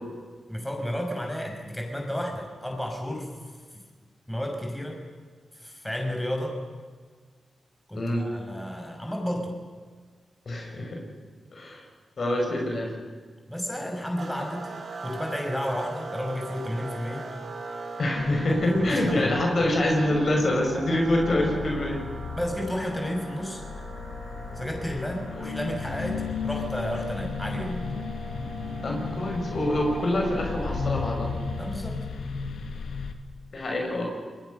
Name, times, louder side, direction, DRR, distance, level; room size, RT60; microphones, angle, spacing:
voice 1, 0.5-3.3 3.7-3.8 4.3-5.0 5.5-6.6 7.9-9.6 13.5-14.7 15.0-17.3 18.5-19.3 22.3-23.6 24.5-27.9 31.6-32.0, equal, 10° left, 2 dB, 6.2 m, -32 dB
voice 2, 8.0-8.3 10.5-11.0 11.5-11.8 12.2-12.9 18.0-22.0 25.3-25.5 28.8-31.3 33.5-34.1, left 1 dB, 60° left, 1 dB, 6.2 m, -25 dB
sound 1, 14.2-32.0, right 3 dB, 65° right, 4.0 m, -41 dB
sound 2, 18.2-33.1, left 5 dB, 80° left, 2.0 m, -35 dB
28.0 x 21.0 x 6.6 m, 1.5 s
cardioid pair, 50°, 0 cm